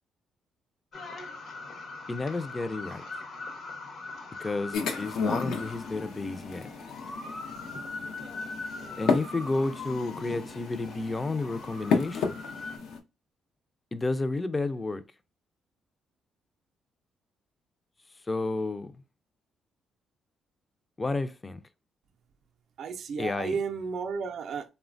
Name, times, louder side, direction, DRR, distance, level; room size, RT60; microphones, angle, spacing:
sound 1, 0.9-12.8, left 3 dB, 65° left, 0.8 m, -41 dB
voice 1, 2.1-3.0 4.4-6.7 9.0-12.4 13.9-15.0 18.3-18.9 21.0-21.6 23.2-23.6, left 3 dB, 25° left, 0.3 m, -31 dB
sound 2, 4.7-13.0, left 5 dB, 85° left, 0.5 m, -33 dB
voice 2, 22.8-24.7, right 5 dB, 65° right, 0.4 m, -33 dB
3.1 x 2.1 x 2.4 m
cardioid pair, 90°, 0 cm